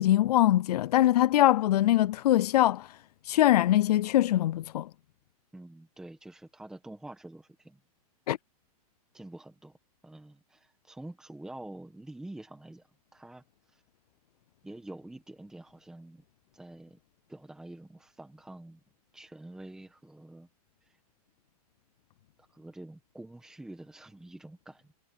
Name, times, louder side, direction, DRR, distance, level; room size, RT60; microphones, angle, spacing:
voice 1, 0.0-3.0 3.2-4.9 8.3-8.4, left 13 dB, 85° left, 0.4 m, -23 dB
voice 2, 5.5-7.8 9.1-9.8 10.0-12.8 13.1-13.8 14.6-16.2 16.5-17.0 17.3-18.8 19.1-20.5 20.8-21.0 22.4-24.9, right 1 dB, 5° right, 1.6 m, -47 dB
supercardioid pair, 160°, 20 cm